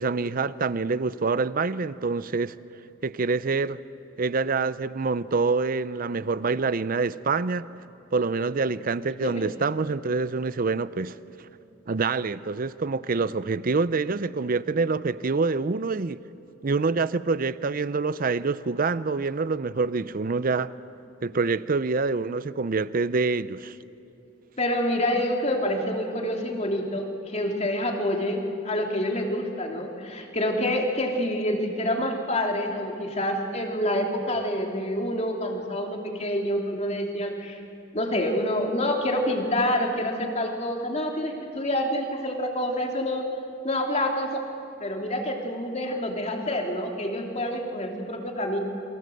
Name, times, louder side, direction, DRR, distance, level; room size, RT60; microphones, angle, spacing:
voice 1, 0.0-2.6 3.0-3.8 4.2-7.7 8.1-11.1 11.9-16.2 16.6-20.7 21.2-23.8, right 4 dB, 45° right, 0.6 m, -26 dB
voice 2, 24.6-37.6 37.9-43.3 43.6-44.4 44.8-48.6, left 1 dB, 35° left, 3.0 m, -27 dB
28.5 x 23.0 x 7.8 m
head